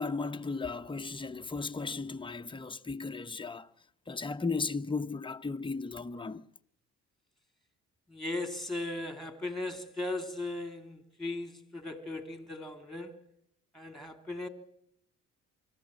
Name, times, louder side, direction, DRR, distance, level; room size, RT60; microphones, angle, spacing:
voice 1, 0.0-3.7 4.1-6.5, left 4 dB, 15° left, 0.9 m, -35 dB
voice 2, 8.1-13.2 13.7-14.5, left 2 dB, ahead, 2.8 m, -37 dB
25.5 x 14.5 x 7.6 m
cardioid pair, 90°, 30 cm